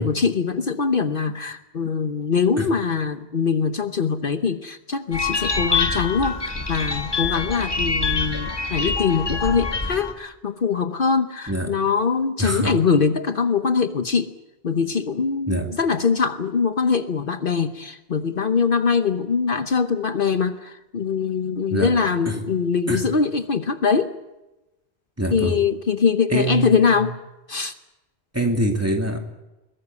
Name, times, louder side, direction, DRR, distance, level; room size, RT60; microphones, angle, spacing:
voice 1, 0.0-14.3 14.6-24.1 25.3-27.1 27.5-27.7, left 5 dB, 55° left, 9 dB, 1.1 m, -22 dB
sound 1, 5.1-10.1, left 4 dB, 25° left, 1.8 m, -25 dB
voice 2, 12.4-12.8 15.5-15.7 21.7-21.9 22.3-22.4 22.9-23.1 25.2-25.6 26.3-26.8 28.3-29.2, right 1 dB, 15° right, 3 dB, 2.4 m, -24 dB
22.0 x 20.0 x 8.3 m, 1.0 s
omnidirectional pair, 1.1 m